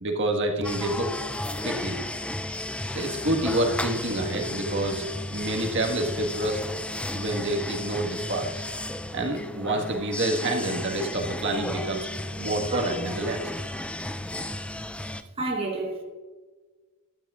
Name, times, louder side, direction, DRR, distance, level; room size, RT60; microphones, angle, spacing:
voice 1, 0.0-1.1 1.6-2.0 2.9-5.0 5.3-6.6 7.1-8.6 9.1-12.1 12.4-13.4, right 1 dB, 60° right, 1.6 m, -28 dB
sound 1, 0.6-15.2, left 1 dB, 5° left, 0.4 m, -34 dB
voice 2, 15.4-16.0, right 2 dB, 25° right, 1.2 m, -29 dB
15.5 x 12.5 x 2.4 m
head